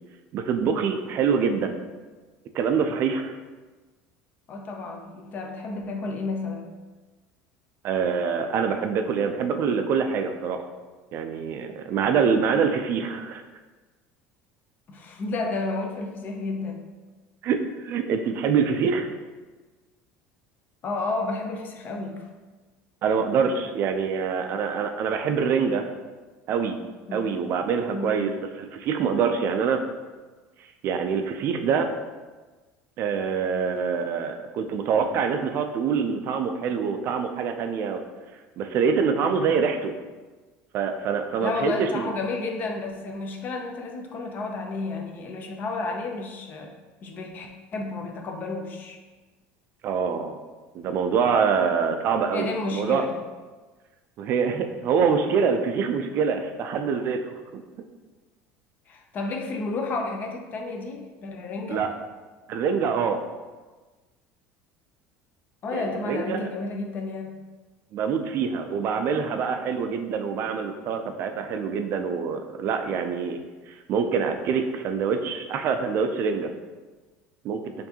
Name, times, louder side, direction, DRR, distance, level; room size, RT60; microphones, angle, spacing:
voice 1, 0.3-1.8 2.5-3.3 7.8-10.6 11.1-13.4 17.4-17.6 17.8-19.1 23.0-25.8 26.5-26.8 27.1-29.8 30.8-31.9 33.0-38.0 38.6-39.9 40.7-42.1 49.8-50.4 50.7-52.5 52.7-53.0 54.2-57.6 61.7-61.9 62.5-63.2 65.7-66.5 67.9-73.4 73.7-76.5 77.4-77.6, right 6 dB, 45° right, 6 dB, 0.3 m, -25 dB
voice 2, 4.5-6.7 14.9-16.8 20.8-22.3 27.1-27.4 27.9-28.3 41.4-46.7 47.0-49.0 52.3-53.1 58.9-61.9 65.6-67.4, left 3 dB, 35° left, 3 dB, 0.5 m, -31 dB
4.5 x 2.6 x 2.8 m, 1.3 s
cardioid pair, 135°, 5 cm